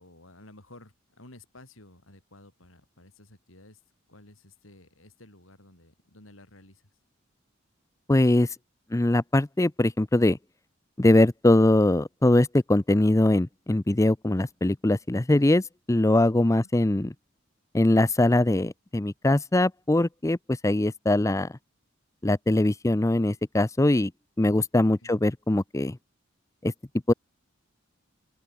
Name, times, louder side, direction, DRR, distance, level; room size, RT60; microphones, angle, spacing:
voice 1, 0.0-3.8 4.1-6.8 16.5-16.7 25.0-25.2, left 1 dB, 85° left, 5.9 m, -53 dB
voice 2, 8.1-8.6 8.9-10.4 11.0-17.1 17.7-21.5 22.2-24.1 24.4-26.0 26.6-26.7 27.1-27.2, left 1 dB, 15° left, 0.6 m, -22 dB
open air
head